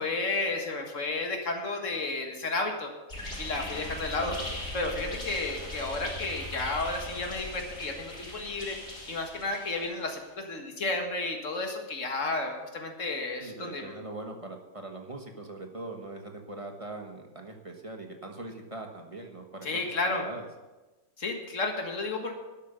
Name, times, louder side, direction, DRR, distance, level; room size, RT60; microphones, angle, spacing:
voice 1, 0.0-2.9 3.4-4.3 4.7-8.8 9.1-13.9 19.6-20.3 21.2-22.4, left 3 dB, 85° left, 3 dB, 2.1 m, -32 dB
sound 1, 3.1-10.1, left 1 dB, 65° left, 3.9 m, -39 dB
voice 2, 13.4-19.7 20.1-20.5, right 2 dB, 25° right, 2 dB, 1.4 m, -41 dB
12.0 x 8.3 x 6.8 m, 1.1 s
omnidirectional pair, 1.3 m